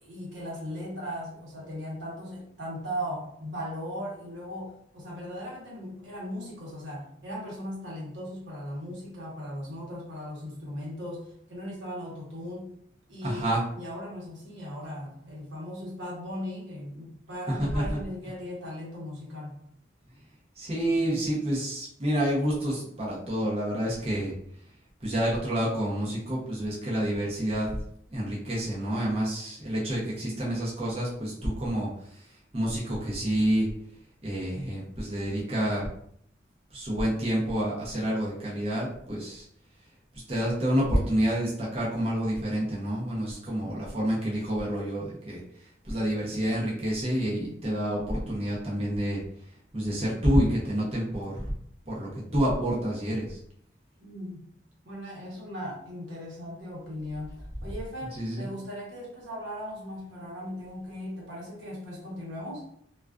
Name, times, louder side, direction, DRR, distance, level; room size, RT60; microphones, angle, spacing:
voice 1, 0.0-12.7 13.1-19.6 54.0-54.4 54.8-62.6, equal, 90° right, -4 dB, 0.9 m, -38 dB
voice 2, 13.2-13.6 17.5-17.8 20.6-24.3 25.0-27.8 28.1-31.9 32.5-33.7 34.2-35.9 36.7-39.4 40.3-45.4 45.9-49.2 49.7-51.3 51.9-53.4 58.2-58.4, equal, 30° right, -6 dB, 0.6 m, -28 dB
2.3 x 2.3 x 2.3 m, 0.68 s
head